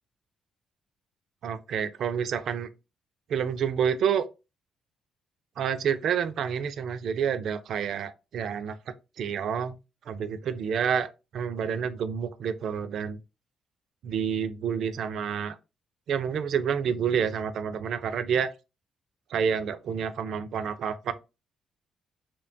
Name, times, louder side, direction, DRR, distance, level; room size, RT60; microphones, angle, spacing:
voice 1, 1.4-2.7 3.3-4.3 5.6-9.8 10.1-11.1 11.3-13.2 14.0-15.6 16.1-18.5 19.3-21.1, right 7 dB, 70° right, 0.3 m, -28 dB
2.8 x 2.1 x 2.5 m
cardioid pair, 90°, 0 cm